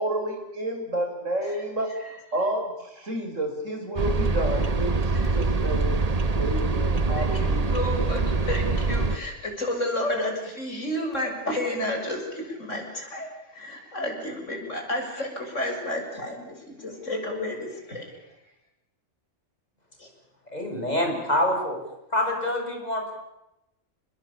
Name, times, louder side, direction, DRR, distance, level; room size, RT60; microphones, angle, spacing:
voice 1, 0.0-1.9 2.3-6.0 6.4-7.7, right 1 dB, 90° right, 3 dB, 7.0 m, -30 dB
sound 1, 4.0-9.2, right 3 dB, 35° right, 1.1 m, -24 dB
voice 2, 7.2-18.4 20.0-20.1, left 1 dB, 80° left, 2 dB, 7.5 m, -31 dB
voice 3, 20.5-21.8 22.1-23.1, left 1 dB, 35° left, 2 dB, 7.2 m, -26 dB
29.0 x 21.0 x 8.8 m, 0.91 s
omnidirectional pair, 1.3 m